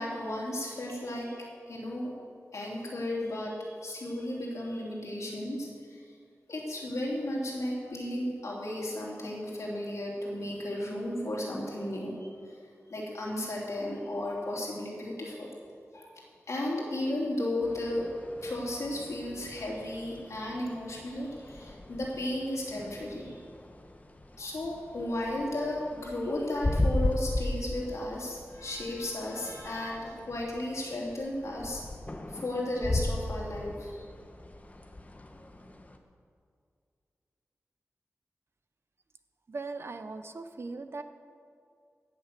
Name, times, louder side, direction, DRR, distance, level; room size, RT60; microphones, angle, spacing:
voice 1, 0.0-2.1 2.5-6.0 6.5-12.6 12.9-15.5 15.9-18.1 18.4-23.4 24.4-31.8 32.3-34.0, left 1 dB, 75° left, -3 dB, 3.2 m, -34 dB
sound 1, 17.6-36.0, left 1 dB, 30° left, 1.1 m, -37 dB
voice 2, 39.5-41.0, right 3 dB, 55° right, 8 dB, 0.8 m, -39 dB
16.5 x 6.8 x 6.7 m, 2.3 s
wide cardioid pair, 80°, 5 cm